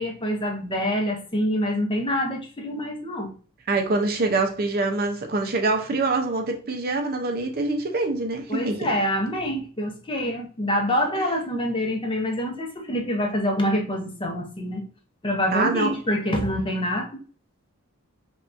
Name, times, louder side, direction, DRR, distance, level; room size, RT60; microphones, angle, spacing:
voice 1, 0.0-3.3 8.5-14.8 15.2-17.2, equal, 25° left, 0.7 m, -26 dB
voice 2, 3.7-8.9 15.5-15.9, right 3 dB, 45° right, 0.6 m, -25 dB
5.4 x 2.4 x 2.5 m
head